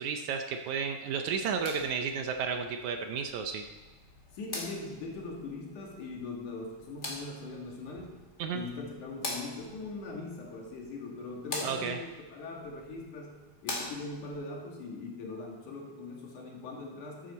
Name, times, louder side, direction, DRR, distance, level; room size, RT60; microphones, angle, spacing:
voice 1, 0.0-3.6 8.4-8.6 11.6-12.0, right 6 dB, 80° right, 5 dB, 1.8 m, -32 dB
sound 1, 1.3-14.3, left 2 dB, 25° left, 1.6 m, -44 dB
voice 2, 4.3-8.1 8.5-13.4 13.6-17.3, left 3 dB, 65° left, -1 dB, 3.0 m, -41 dB
13.5 x 9.1 x 4.1 m, 1.2 s
omnidirectional pair, 3.9 m